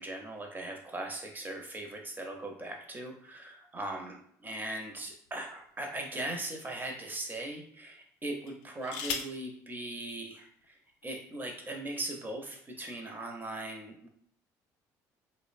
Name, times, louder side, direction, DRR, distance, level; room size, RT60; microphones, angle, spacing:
voice 1, 0.0-10.7 11.0-14.1, right 1 dB, 20° right, 2 dB, 0.7 m, -39 dB
sound 1, 4.7-5.9 6.6-6.8 8.4-9.5 10.6-10.7 11.0-11.4, left 6 dB, 75° left, 0.4 m, -40 dB
2.7 x 2.1 x 2.5 m, 0.65 s
hypercardioid pair, 65°, 9 cm